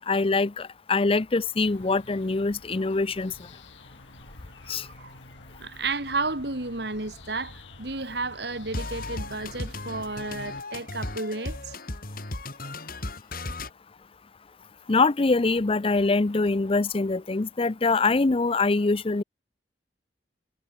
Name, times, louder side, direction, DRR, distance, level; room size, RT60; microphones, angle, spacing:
voice 1, 0.0-3.3 4.7-4.9 14.9-19.2, left 3 dB, 30° left, 0.5 m, -24 dB
sound 1, 1.6-10.6, left 2 dB, 90° left, 7.9 m, -48 dB
voice 2, 4.6-5.1 5.6-7.5 7.8-11.7, right 3 dB, 60° right, 3.2 m, -32 dB
sound 2, 8.7-13.7, left 2 dB, 50° left, 3.4 m, -35 dB
head